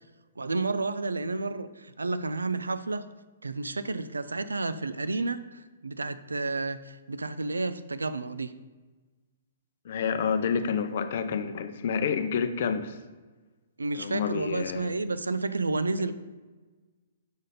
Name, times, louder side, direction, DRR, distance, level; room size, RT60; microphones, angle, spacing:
voice 1, 0.4-3.1 3.4-8.5 13.8-16.1, right 3 dB, 75° right, 13 dB, 0.4 m, -31 dB
voice 2, 9.8-13.0 13.9-14.9 16.0-16.1, left 6 dB, 50° left, 9 dB, 0.6 m, -29 dB
6.3 x 5.1 x 3.9 m, 1.3 s
figure-of-eight pair, 120°, 0 cm